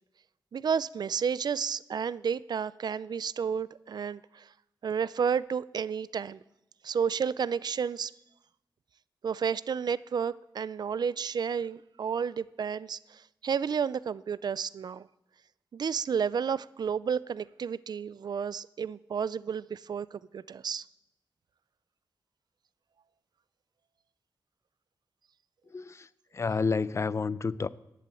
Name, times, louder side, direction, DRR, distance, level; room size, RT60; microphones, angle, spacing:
voice 1, 0.5-4.5 4.8-6.4 6.8-8.1 9.2-15.1 15.7-20.9, right 7 dB, 60° right, 0.4 m, -31 dB
voice 2, 25.7-27.7, left 4 dB, 35° left, 0.5 m, -30 dB
11.0 x 11.0 x 8.3 m
wide cardioid pair, 110°, 8 cm